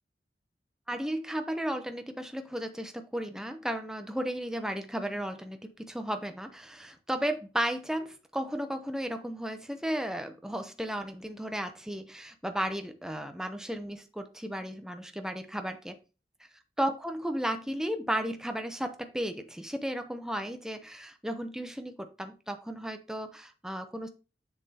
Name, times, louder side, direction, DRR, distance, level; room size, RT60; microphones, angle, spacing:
voice 1, 0.9-16.0 16.8-24.1, equal, 5° right, 0.7 m, -34 dB
7.6 x 6.9 x 2.9 m
head